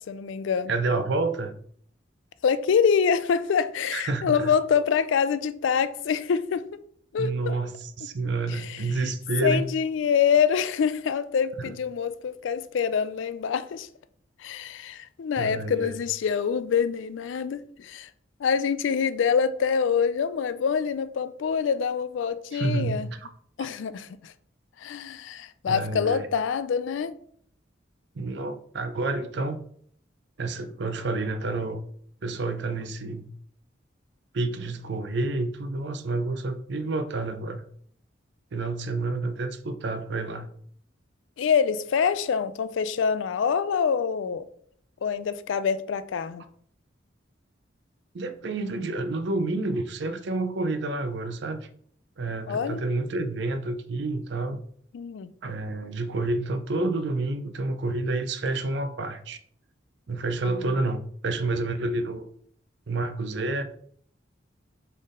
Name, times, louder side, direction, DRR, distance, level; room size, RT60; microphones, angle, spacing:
voice 1, 0.0-0.7 2.4-6.7 7.1-7.6 8.5-8.8 9.4-13.9 14.4-18.1 18.4-23.1 23.6-24.3 24.8-27.1 41.4-44.5 45.0-46.4 52.5-52.8 54.9-55.3 60.4-60.7, left 6 dB, 80° left, 0.3 m, -25 dB
voice 2, 0.7-1.5 3.9-4.5 7.2-9.7 11.6-11.7 15.4-15.9 22.5-23.2 23.6-23.7 25.7-26.3 28.1-29.6 30.4-31.8 32.2-33.3 34.3-37.6 38.5-40.5 48.1-51.7 52.2-54.6 55.4-59.4 60.1-62.3 62.9-63.6, right 2 dB, 65° right, 0.5 m, -29 dB
4.2 x 3.4 x 3.7 m
head